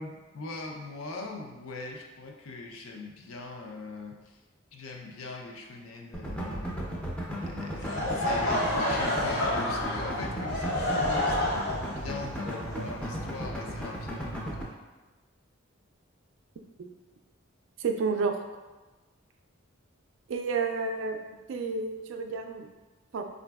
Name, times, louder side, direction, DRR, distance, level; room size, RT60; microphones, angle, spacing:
voice 1, 0.0-4.4 4.7-6.8 7.4-14.6, left 3 dB, 90° left, 1 dB, 0.5 m, -41 dB
sound 1, 6.1-14.6, equal, 5° left, 0.4 m, -35 dB
Laughter / Crowd, 7.8-13.7, left 1 dB, 55° left, 0.7 m, -29 dB
voice 2, 17.8-18.4 20.3-21.2 21.5-22.7 23.1-23.2, right 4 dB, 65° right, 5 dB, 0.3 m, -30 dB
4.7 x 2.5 x 2.3 m, 1.2 s
head